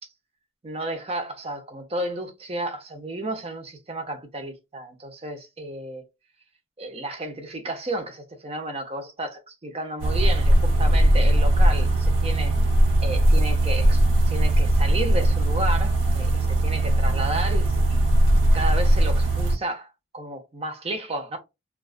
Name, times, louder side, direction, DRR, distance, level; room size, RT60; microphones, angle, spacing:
voice 1, 0.6-6.0 6.8-12.6 13.0-18.1 18.5-21.4, right 1 dB, 30° right, 0.7 m, -32 dB
sound 1, 10.0-19.6, right 1 dB, 80° right, 0.9 m, -19 dB
2.3 x 2.3 x 2.3 m
head